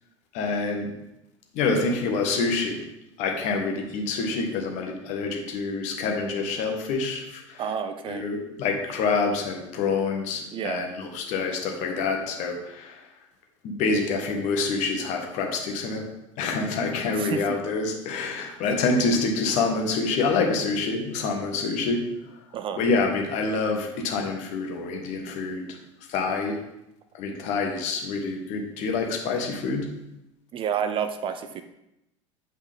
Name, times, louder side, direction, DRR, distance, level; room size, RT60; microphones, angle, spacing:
voice 1, 0.3-0.9 1.5-2.8 3.2-7.6 8.1-13.0 13.6-16.1 16.4-22.1 22.7-25.7 26.1-26.6 27.2-29.9, left 4 dB, 50° left, 3 dB, 1.3 m, -27 dB
voice 2, 7.6-8.2 10.5-10.8 17.1-17.6 22.5-22.8 30.5-31.6, right 8 dB, 35° right, 9 dB, 0.5 m, -30 dB
8.3 x 4.9 x 3.7 m, 0.88 s
figure-of-eight pair, 70°, 16 cm